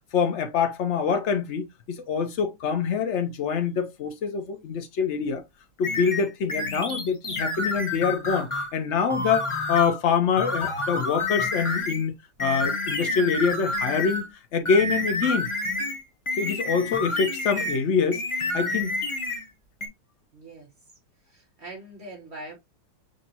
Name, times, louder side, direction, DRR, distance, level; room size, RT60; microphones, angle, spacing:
voice 1, 0.1-5.4 5.8-15.5 16.4-18.2 18.5-18.9, left 6 dB, 65° left, 0.7 m, -25 dB
sound 1, 5.8-8.7 9.1-10.0 10.4-12.0 12.4-14.3 14.6-17.8 18.1-19.4 19.8-19.9, left 2 dB, 25° left, 0.7 m, -29 dB
voice 2, 20.3-20.7 21.3-22.6, right 2 dB, 35° right, 2.6 m, -42 dB
6.4 x 2.7 x 2.8 m
omnidirectional pair, 2.0 m